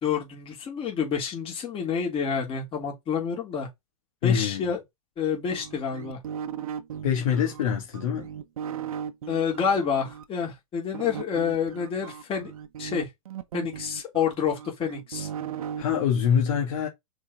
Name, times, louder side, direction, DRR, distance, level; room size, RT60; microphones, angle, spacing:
voice 1, 0.0-3.7 4.2-4.8 5.2-6.2 9.3-12.5 12.8-13.1 13.5-15.3 15.9-16.0, left 7 dB, 30° left, 3.2 m, -28 dB
voice 2, 4.2-4.7 7.0-8.3 15.8-16.9, left 7 dB, 65° left, 2.1 m, -24 dB
sound 1, 5.5-10.2 10.9-15.8, right 8 dB, 75° right, 1.0 m, -37 dB
6.1 x 4.2 x 3.7 m
hypercardioid pair, 110°, 19 cm